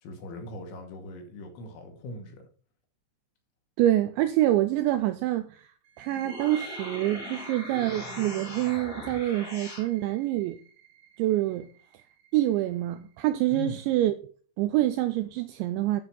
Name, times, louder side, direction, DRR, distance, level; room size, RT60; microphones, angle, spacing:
voice 1, 0.0-2.5 13.5-13.8, left 2 dB, 70° left, 4.2 m, -40 dB
voice 2, 3.8-5.7 6.0-10.6 11.2-11.7 12.3-14.1 14.6-16.0, right 14 dB, 85° right, 2.6 m, -26 dB
sound 1, 5.8-13.3, right 8 dB, 55° right, 3.2 m, -48 dB
sound 2, 6.1-9.9, left 2 dB, 35° left, 1.5 m, -40 dB
9.9 x 6.7 x 4.2 m
omnidirectional pair, 5.8 m